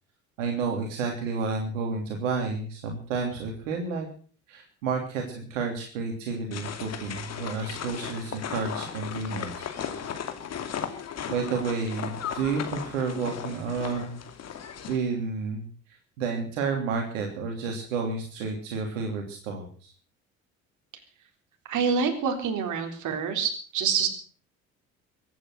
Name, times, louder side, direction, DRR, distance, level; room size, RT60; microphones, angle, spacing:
voice 1, 0.4-4.1 4.5-9.7 11.3-14.2 14.9-15.7 16.2-19.9, right 4 dB, 65° right, 2 dB, 3.2 m, -30 dB
sound 1, 6.5-15.0, left 8 dB, 40° left, 2.7 m, -36 dB
voice 2, 21.7-24.1, right 6 dB, 45° right, 4 dB, 3.9 m, -26 dB
23.0 x 9.3 x 6.3 m, 0.43 s
figure-of-eight pair, 60°, 40 cm